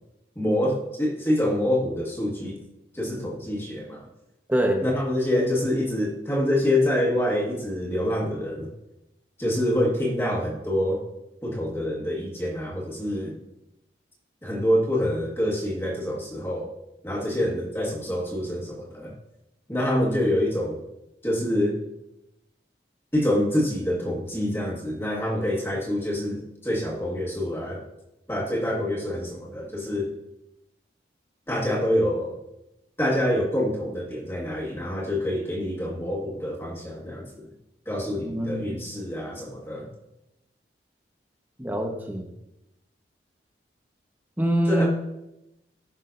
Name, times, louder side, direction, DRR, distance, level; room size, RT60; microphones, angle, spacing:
voice 1, 0.3-2.6 2.9-4.1 4.8-8.7 9.4-11.0 11.4-13.4 14.4-16.7 17.0-19.1 19.7-20.8 21.2-21.7 23.1-27.8 28.3-30.1 31.5-32.4 33.0-37.5 37.8-39.9 44.7-44.9, left 1 dB, 15° left, -2 dB, 1.7 m, -26 dB
voice 2, 4.5-4.8 38.2-38.8 41.6-42.3 44.4-44.9, right 1 dB, 10° right, 2 dB, 1.1 m, -24 dB
16.5 x 6.1 x 2.7 m, 0.90 s
head